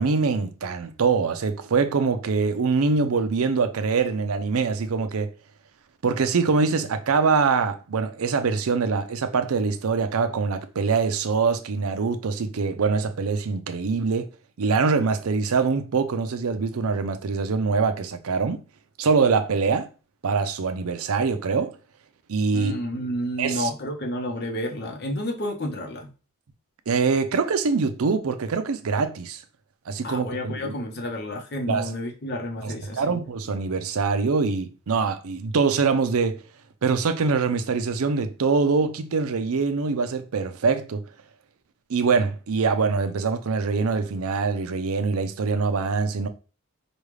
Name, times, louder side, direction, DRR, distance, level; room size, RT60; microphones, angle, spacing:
voice 1, 0.0-5.3 6.0-14.3 14.6-18.6 19.0-19.9 20.2-21.8 22.3-22.7 23.4-23.7 26.9-29.4 29.9-30.7 31.7-31.9 32.6-36.4 36.8-41.0 41.9-46.3, right 4 dB, 80° right, 0.5 m, -24 dB
voice 2, 22.5-26.1 30.0-33.2, equal, 50° left, 0.8 m, -30 dB
5.1 x 2.4 x 3.2 m
head